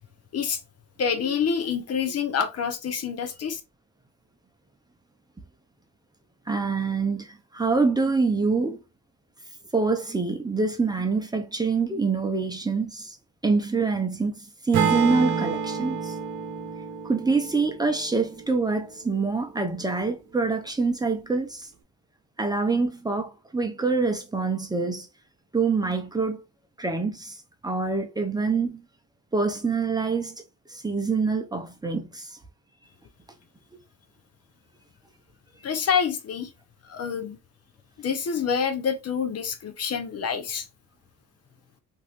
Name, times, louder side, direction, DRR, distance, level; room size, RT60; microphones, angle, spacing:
voice 1, 1.0-3.6 35.6-36.5 36.9-37.4 38.0-40.6, left 6 dB, 55° left, 0.7 m, -27 dB
voice 2, 6.5-8.8 9.7-13.2 13.4-16.2 17.0-21.7 22.4-25.1 25.5-26.4 26.8-28.8 29.3-30.4 30.7-32.4, right 4 dB, 15° right, 0.6 m, -25 dB
Acoustic guitar / Strum, 14.7-18.9, right 6 dB, 75° right, 0.8 m, -29 dB
3.0 x 2.7 x 2.9 m
cardioid pair, 90°, 30 cm